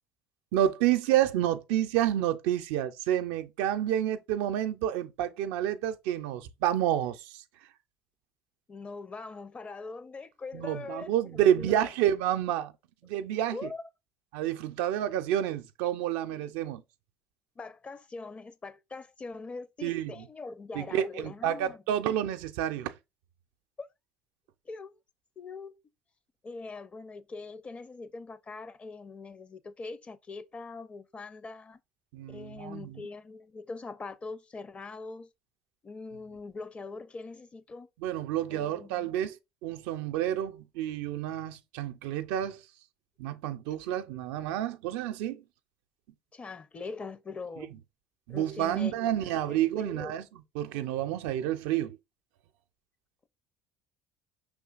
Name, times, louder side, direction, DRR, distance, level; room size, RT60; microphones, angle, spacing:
voice 1, 0.5-7.4 10.5-12.7 13.0-13.7 14.3-16.8 19.8-20.3 20.7-23.0 32.1-33.0 38.0-42.6 43.2-45.4 47.6-47.7 48.3-50.2 50.6-52.0, right 11 dB, 80° right, 0.4 m, -29 dB
voice 2, 8.7-11.9 13.5-13.8 16.3-16.4 17.6-21.8 23.8-23.9 24.7-24.9 25.4-25.7 26.4-31.8 32.3-35.3 35.8-37.9 38.5-39.1 46.3-47.8 48.3-50.1, left 4 dB, 30° left, 0.6 m, -42 dB
5.5 x 3.5 x 2.4 m
supercardioid pair, 75°, 4 cm